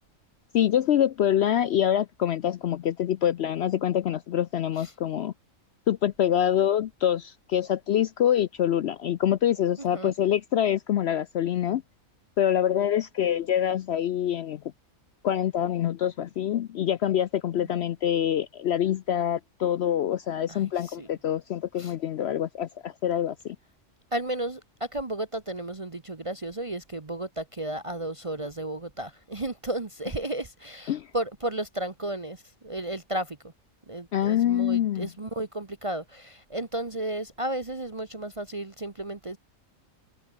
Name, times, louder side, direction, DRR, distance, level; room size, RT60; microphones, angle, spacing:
voice 1, 0.5-5.3 5.9-11.8 12.4-14.6 15.2-23.6 30.9-31.1 34.1-35.1, left 10 dB, 65° left, 0.7 m, -25 dB
voice 2, 20.5-21.1 21.8-21.9 24.1-33.4 33.9-39.4, right 1 dB, 25° right, 1.1 m, -33 dB
open air
omnidirectional pair, 1.4 m